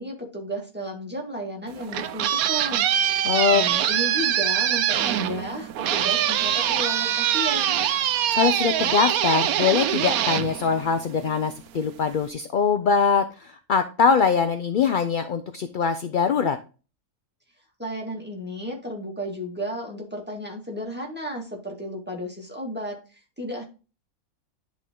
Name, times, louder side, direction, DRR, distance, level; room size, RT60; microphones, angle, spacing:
voice 1, 0.0-7.8 17.8-23.6, equal, 5° right, -1 dB, 1.8 m, -33 dB
sound 1, 1.7-11.3, right 10 dB, 85° right, 1.1 m, -24 dB
voice 2, 3.2-3.6 8.3-16.6, left 6 dB, 60° left, 8 dB, 0.5 m, -22 dB
10.5 x 3.7 x 3.7 m, 0.34 s
omnidirectional pair, 1.5 m